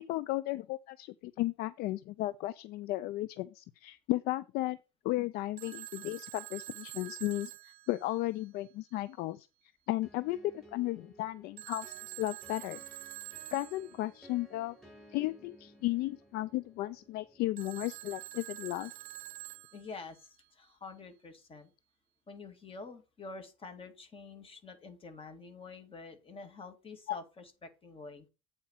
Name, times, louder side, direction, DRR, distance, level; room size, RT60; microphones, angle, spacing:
voice 1, 0.0-4.8 5.0-9.5 9.9-12.8 13.5-14.8 15.1-18.9 27.1-27.2, left 16 dB, 60° left, 0.5 m, -35 dB
Telephone, 5.6-8.7 11.6-14.1 17.6-20.2, right 16 dB, 55° right, 0.4 m, -47 dB
sound 1, 10.0-19.6, right 1 dB, ahead, 5.1 m, -59 dB
voice 2, 19.7-21.7 22.3-28.3, left 3 dB, 30° left, 2.3 m, -48 dB
8.5 x 4.3 x 5.6 m
hypercardioid pair, 70°, 18 cm